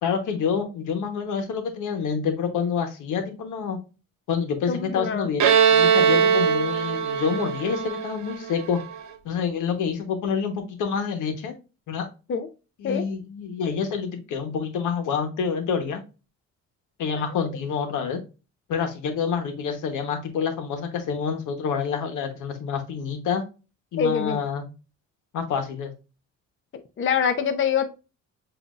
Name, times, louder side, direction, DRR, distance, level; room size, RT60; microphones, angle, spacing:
voice 1, 0.0-3.8 4.3-8.8 9.2-11.5 11.9-12.1 12.8-16.0 17.0-18.2 18.7-23.4 23.9-24.6 25.3-25.9, left 6 dB, 80° left, 7 dB, 1.1 m, -27 dB
voice 2, 4.7-5.3 12.3-12.5 12.8-13.0 24.0-24.4 27.0-27.9, left 6 dB, 40° left, 8 dB, 0.6 m, -24 dB
Bowed string instrument, 5.4-8.9, right 7 dB, 70° right, 0.9 m, -21 dB
7.3 x 2.7 x 2.4 m, 0.31 s
cardioid pair, 90°, 30 cm